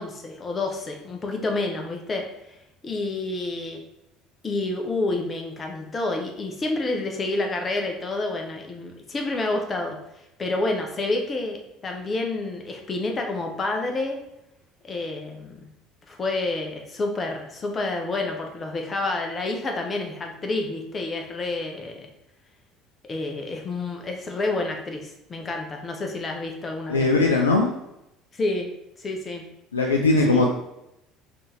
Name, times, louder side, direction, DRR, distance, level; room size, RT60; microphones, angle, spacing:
voice 1, 0.0-2.2 2.8-3.8 4.4-10.0 10.4-14.2 14.8-15.6 16.1-22.1 23.0-27.1 28.3-28.7 29.0-29.5 30.3-30.5, left 2 dB, 30° left, 3 dB, 0.8 m, -29 dB
voice 2, 26.9-27.7 29.7-30.5, left 3 dB, 80° left, 1 dB, 0.3 m, -19 dB
4.2 x 2.8 x 3.2 m, 0.87 s
figure-of-eight pair, 60°, 0 cm